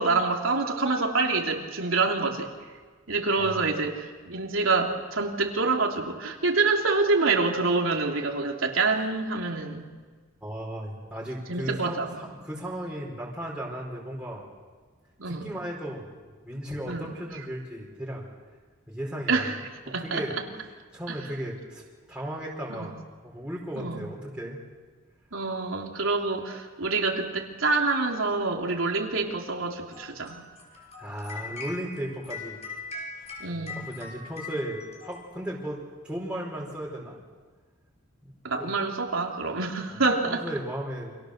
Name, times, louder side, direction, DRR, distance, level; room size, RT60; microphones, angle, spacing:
voice 1, 0.0-2.5 3.1-9.9 11.5-12.2 15.2-15.5 16.9-17.1 19.3-19.6 19.9-20.4 21.1-21.2 22.7-22.9 23.8-24.0 25.3-30.4 33.4-33.9 38.4-40.4, right 3 dB, 85° right, 1 dB, 3.4 m, -26 dB
voice 2, 10.4-14.4 15.3-16.2 16.4-18.3 18.9-19.5 19.9-20.4 20.9-24.6 30.7-32.6 33.1-37.2 38.2-38.3 38.6-38.7 39.9-40.0 40.3-41.1, equal, 5° right, -4 dB, 4.8 m, -36 dB
sound 1, 29.9-35.8, left 4 dB, 35° left, 5.7 m, -41 dB
30.0 x 27.0 x 6.7 m, 1.5 s
head